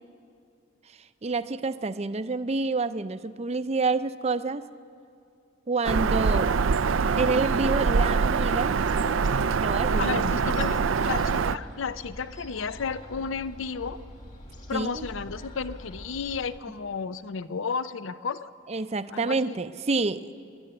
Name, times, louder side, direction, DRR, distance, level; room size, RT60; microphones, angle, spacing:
voice 1, 1.0-4.6 5.7-6.5 7.2-8.8 9.6-10.4 14.7-15.1 18.7-20.3, right 3 dB, 30° right, 12 dB, 0.5 m, -28 dB
Bird vocalization bird call bird song, 5.8-11.6, right 5 dB, 80° right, 0.5 m, -24 dB
sound 1, 8.3-16.6, equal, 40° left, 2.0 m, -44 dB
voice 2, 10.0-14.0 14.7-18.5 19.1-19.5, left 5 dB, 75° left, 15 dB, 0.6 m, -33 dB
26.0 x 11.5 x 9.8 m, 2.5 s
head